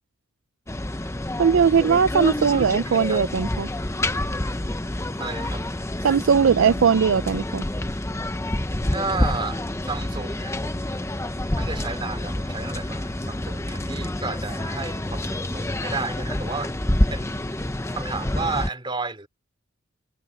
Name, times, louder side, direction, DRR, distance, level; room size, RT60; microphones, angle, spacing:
sound 1, 0.7-18.7, left 1 dB, 15° left, 0.7 m, -28 dB
voice 1, 1.4-3.7 6.0-7.6, right 6 dB, 70° right, 0.4 m, -19 dB
voice 2, 2.5-3.2 5.2-5.6 8.9-11.1 11.5-16.7 17.1-17.3 17.9-19.3, right 3 dB, 25° right, 2.9 m, -33 dB
head